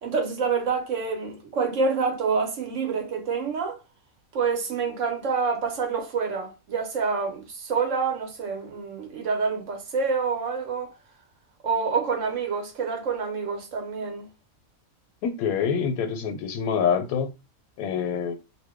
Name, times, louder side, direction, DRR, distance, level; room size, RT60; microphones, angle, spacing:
voice 1, 0.0-3.8 4.3-10.9 11.6-14.3, right 5 dB, 65° right, 1.1 m, -27 dB
voice 2, 15.2-17.3 17.8-18.4, left 7 dB, 85° left, 1.1 m, -26 dB
2.6 x 2.1 x 3.5 m
omnidirectional pair, 1.5 m